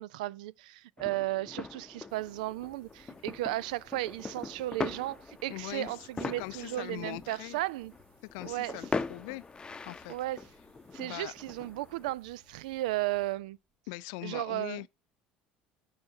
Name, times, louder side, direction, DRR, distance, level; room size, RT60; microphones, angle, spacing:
voice 1, 0.0-7.9 8.4-8.8 10.1-10.4 10.9-13.6 14.2-14.8, right 17 dB, 70° right, 0.4 m, -35 dB
sound 1, 1.0-12.1, left 4 dB, 20° left, 0.8 m, -41 dB
sound 2, 2.1-13.7, right 1 dB, 45° right, 5.8 m, -64 dB
voice 2, 5.5-7.6 8.2-9.4 9.9-10.1 11.0-11.3 13.9-14.9, left 22 dB, 65° left, 0.4 m, -41 dB
15.0 x 5.6 x 2.7 m
hypercardioid pair, 65°, 4 cm